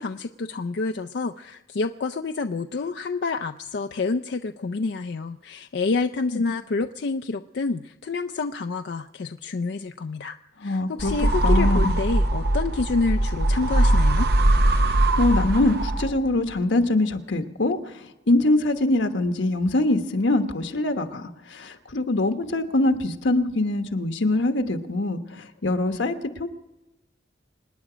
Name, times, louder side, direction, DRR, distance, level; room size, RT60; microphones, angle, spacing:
voice 1, 0.0-14.3, left 4 dB, 60° left, 8 dB, 0.4 m, -28 dB
voice 2, 10.6-11.1 11.4-11.9 14.8-26.5, left 2 dB, 90° left, 7 dB, 1.2 m, -24 dB
sound 1, 11.0-16.3, right 1 dB, 60° right, 0.8 m, -21 dB
26.0 x 10.0 x 5.0 m, 0.99 s
head